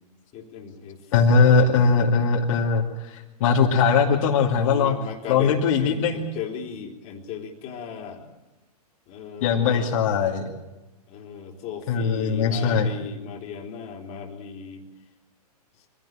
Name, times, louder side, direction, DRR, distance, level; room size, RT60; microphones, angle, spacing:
voice 1, 0.3-1.0 1.5-1.9 3.9-4.3 4.7-8.3 9.1-10.0 11.1-14.9, left 7 dB, 35° left, 2 dB, 3.5 m, -37 dB
voice 2, 1.1-2.8 3.4-4.9 5.3-6.2 9.4-10.4 11.9-12.9, left 5 dB, 55° left, -1 dB, 2.6 m, -20 dB
24.0 x 16.0 x 9.0 m, 1.1 s
hypercardioid pair, 125°, 21 cm